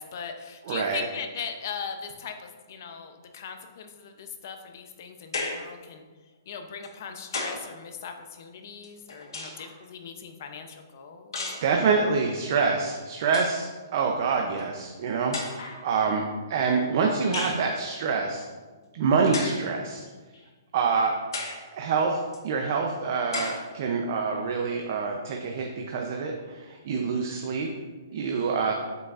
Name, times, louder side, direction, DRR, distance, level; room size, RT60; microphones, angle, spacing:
voice 1, 0.0-6.0 6.5-11.9, left 6 dB, 45° left, 6 dB, 0.6 m, -39 dB
voice 2, 0.7-1.0 11.6-16.2 16.5-18.4 18.9-20.0 20.7-21.1 21.7-22.2 22.4-27.7 28.1-28.7, right 5 dB, 40° right, 1 dB, 0.6 m, -26 dB
sound 1, 5.3-5.7 6.8-7.7 8.8-9.7 11.3-11.7 12.8-12.9 13.2-13.6 14.6-14.7 15.3-15.8 17.3-17.7 19.3-19.7 20.3-20.4 21.3-21.7 22.3-22.4 23.3-23.7, left 3 dB, 85° left, 1.3 m, -34 dB
7.8 x 5.0 x 2.5 m, 1.4 s
hypercardioid pair, 165°, 2 cm